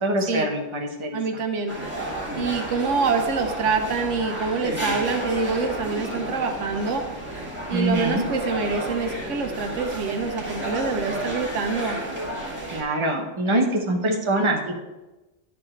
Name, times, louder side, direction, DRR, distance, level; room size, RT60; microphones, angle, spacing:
voice 1, 0.0-1.2 7.7-8.2 12.7-14.7, right 1 dB, 25° right, 1 dB, 1.0 m, -24 dB
voice 2, 1.1-1.7 2.4-7.0 7.7-12.0, right 4 dB, 85° right, 5 dB, 1.2 m, -26 dB
sound 1, 1.7-12.8, right 1 dB, 10° right, 1.9 m, -32 dB
11.0 x 4.3 x 4.4 m, 1.1 s
omnidirectional pair, 1.2 m